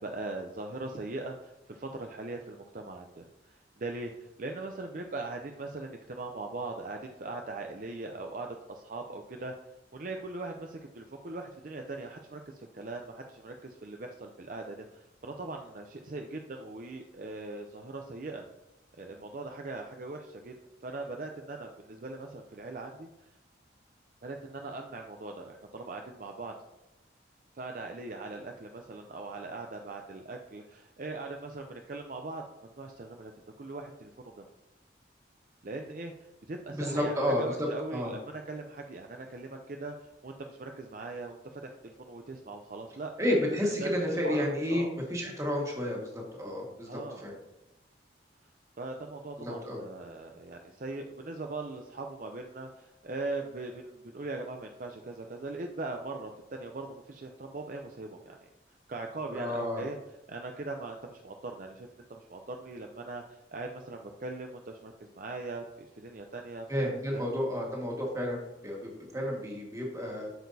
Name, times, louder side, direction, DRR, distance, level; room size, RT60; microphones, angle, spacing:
voice 1, 0.0-9.5 9.9-18.4 19.0-20.6 20.8-23.3 24.2-26.5 27.6-33.3 33.6-34.5 35.6-43.1 43.6-44.4 44.7-44.9 46.9-47.3 48.8-58.4 58.9-60.0 60.3-65.6 66.0-66.7 67.1-67.3, right 2 dB, 45° right, 3 dB, 0.5 m, -40 dB
voice 2, 36.7-38.1 43.2-47.3 49.4-49.8 59.3-59.8 66.7-70.3, left 1 dB, 15° right, -1 dB, 1.6 m, -31 dB
7.9 x 6.5 x 2.7 m, 0.97 s
head